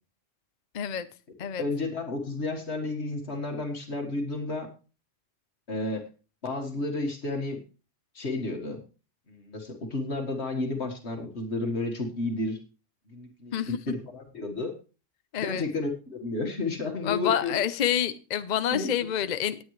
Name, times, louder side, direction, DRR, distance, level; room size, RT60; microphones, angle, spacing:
voice 1, 0.7-1.1 1.4-1.7 13.5-13.8 15.3-15.7 17.0-19.6, left 9 dB, 45° left, 12 dB, 0.7 m, -28 dB
voice 2, 1.6-4.7 5.7-6.1 6.4-7.6 8.2-8.8 9.3-12.6 13.1-13.5 13.9-14.7 15.4-17.6 18.7-18.9, left 2 dB, 65° left, 3 dB, 2.0 m, -31 dB
18.5 x 8.5 x 3.2 m, 0.35 s
omnidirectional pair, 1.2 m